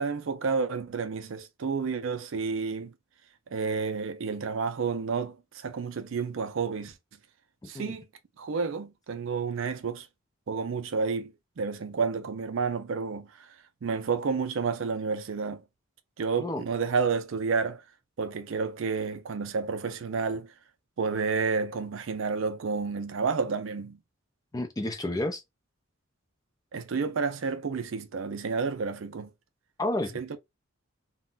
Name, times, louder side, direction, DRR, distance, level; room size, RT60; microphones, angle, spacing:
voice 1, 0.0-2.9 3.5-7.0 7.6-8.1 8.4-10.1 10.5-13.5 13.8-15.6 16.2-17.8 18.2-20.5 21.0-24.0 26.7-29.3 30.1-30.4, right 5 dB, 60° right, 0.4 m, -30 dB
voice 2, 7.6-7.9 16.4-16.6 24.5-25.4 29.8-30.2, left 1 dB, 15° left, 0.4 m, -31 dB
2.4 x 2.1 x 3.7 m
head